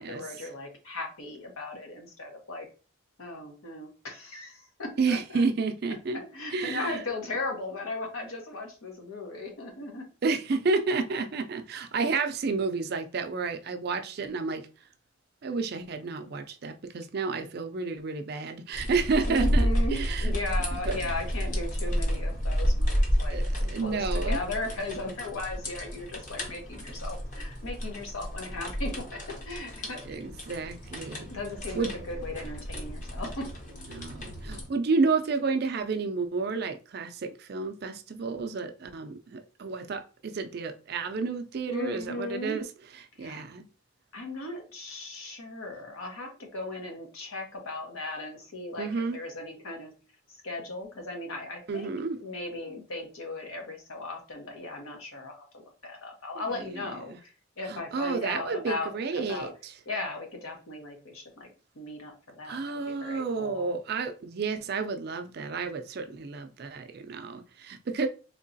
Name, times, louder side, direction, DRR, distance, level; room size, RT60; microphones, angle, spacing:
voice 1, 0.0-2.7 3.2-5.5 6.1-10.0 19.3-23.4 23.6-30.2 31.3-33.5 41.7-42.6 43.2-43.4 44.1-49.9 50.4-51.9 52.2-59.5 59.9-61.5 61.7-63.7, left 2 dB, 85° left, 1.1 m, -37 dB
voice 2, 5.0-6.2 6.5-7.0 10.2-14.7 15.4-20.4 20.7-21.0 23.3-24.4 30.1-31.3 31.7-31.9 33.9-42.7 43.2-43.7 48.8-49.2 51.7-52.2 56.4-57.2 57.7-59.7 62.4-68.1, right 4 dB, 50° right, 0.4 m, -31 dB
sound 1, 18.7-34.7, equal, 35° left, 0.8 m, -31 dB
3.7 x 2.9 x 2.7 m
head